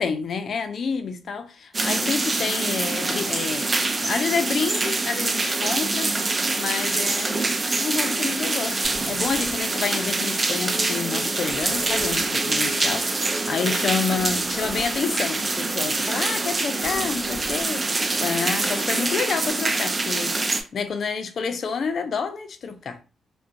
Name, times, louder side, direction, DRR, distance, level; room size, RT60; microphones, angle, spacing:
voice 1, 0.0-7.4 7.8-17.9 18.2-20.4 20.7-23.0, left 5 dB, 60° left, 0.4 m, -29 dB
sound 1, 1.7-20.6, right 3 dB, 40° right, 0.4 m, -25 dB
sound 2, 8.8-19.5, right 1 dB, 85° right, 0.7 m, -44 dB
2.4 x 2.1 x 2.5 m
hypercardioid pair, 45°, 0 cm